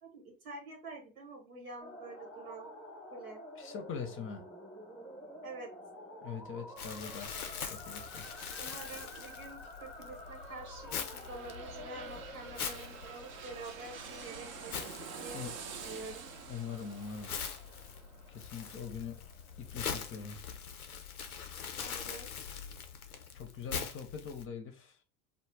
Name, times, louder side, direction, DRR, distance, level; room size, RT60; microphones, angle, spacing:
voice 1, 0.0-2.7 3.1-3.4 5.4-5.7 8.6-16.3 21.8-22.3, right 3 dB, 85° right, 1.2 m, -47 dB
sound 1, 1.8-19.9, equal, ahead, 0.9 m, -51 dB
voice 2, 3.6-4.4 6.2-7.3 7.6-8.3 15.3-15.5 16.5-17.3 18.3-19.2 19.6-20.4 22.9-25.0, left 6 dB, 30° left, 0.6 m, -43 dB
Crumpling crinkling, 6.8-24.4, left 7 dB, 90° left, 0.5 m, -43 dB
sound 2, 10.1-19.7 20.1-20.2, right 6 dB, 40° right, 0.6 m, -48 dB
2.4 x 2.1 x 3.1 m
hypercardioid pair, 75°, 42 cm